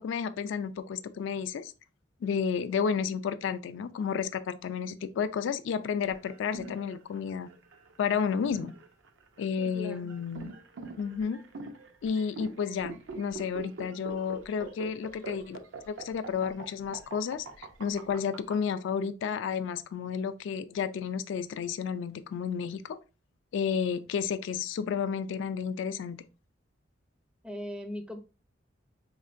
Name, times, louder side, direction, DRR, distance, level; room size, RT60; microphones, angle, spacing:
voice 1, 0.0-1.7 2.2-7.5 8.0-8.7 9.4-10.5 11.0-11.4 12.0-15.6 15.9-23.0 23.5-26.2, left 6 dB, 70° left, 0.3 m, -31 dB
sound 1, 6.1-18.5, right 3 dB, 75° right, 0.6 m, -43 dB
voice 2, 9.6-10.1 27.4-28.2, left 1 dB, 5° right, 0.4 m, -39 dB
3.6 x 3.2 x 2.5 m
head